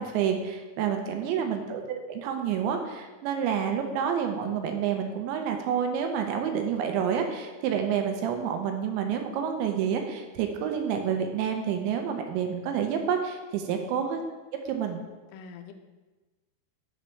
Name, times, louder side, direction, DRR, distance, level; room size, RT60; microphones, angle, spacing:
voice 1, 0.0-14.2 14.7-15.0, right 8 dB, 85° right, 5 dB, 2.9 m, -29 dB
voice 2, 1.0-1.6 13.7-14.0 15.3-15.7, left 7 dB, 85° left, 6 dB, 2.3 m, -47 dB
6.9 x 6.4 x 3.2 m, 1.2 s
omnidirectional pair, 5.3 m